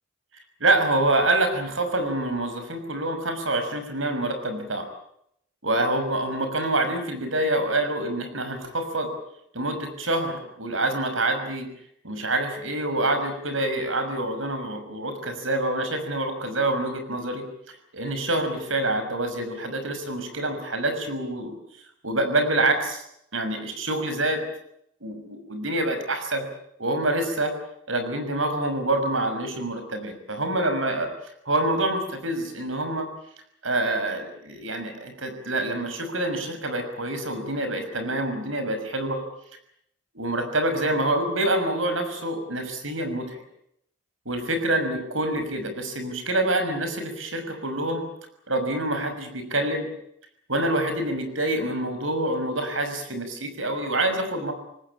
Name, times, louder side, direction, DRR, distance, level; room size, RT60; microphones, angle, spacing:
voice 1, 0.6-4.9 5.6-9.1 9.5-11.7 12.0-21.5 22.0-23.0 23.3-24.4 25.0-26.5 26.8-27.5 27.9-31.1 31.5-33.1 33.6-39.2 40.1-43.4 44.3-48.0 48.5-49.9 50.5-54.5, right 1 dB, 75° right, 8 dB, 6.2 m, -26 dB
26.0 x 19.5 x 8.8 m, 0.74 s
head